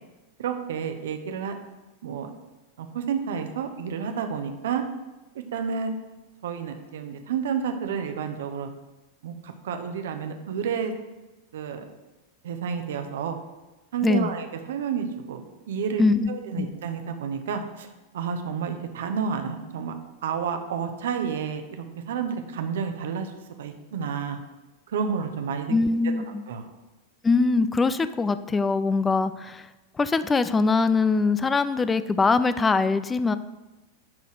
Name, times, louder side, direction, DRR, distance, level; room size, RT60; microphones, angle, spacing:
voice 1, 0.4-1.5 2.0-2.3 2.8-4.8 5.5-5.9 6.4-8.7 9.2-10.9 11.5-11.8 12.4-13.4 13.9-17.9 18.1-19.9 20.2-23.3 23.6-24.4 24.9-25.7 26.5-26.7, right 7 dB, 60° right, 6 dB, 1.0 m, -30 dB
voice 2, 14.0-14.3 16.0-16.3 16.6-16.7 25.7-26.4 27.2-29.6 30.0-33.4, left 4 dB, 15° left, 13 dB, 0.4 m, -22 dB
10.5 x 4.1 x 6.5 m, 1.1 s
figure-of-eight pair, 90°, 0 cm